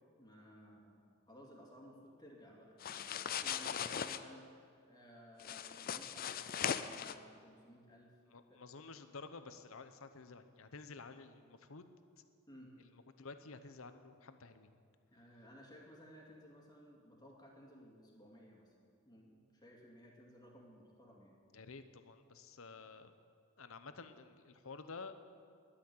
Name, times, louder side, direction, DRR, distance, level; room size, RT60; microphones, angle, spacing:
voice 1, 0.2-6.4 6.7-8.1 8.5-8.6 12.5-12.7 15.1-18.7 19.0-21.4, equal, 20° left, -1 dB, 2.4 m, -58 dB
sound 1, 2.8-4.2 5.4-7.1, left 8 dB, 45° left, 0.5 m, -39 dB
voice 2, 8.3-11.9 12.8-14.7 21.5-23.1 23.6-25.2, left 4 dB, 70° left, 10 dB, 0.9 m, -51 dB
11.5 x 10.0 x 8.5 m, 2.2 s
head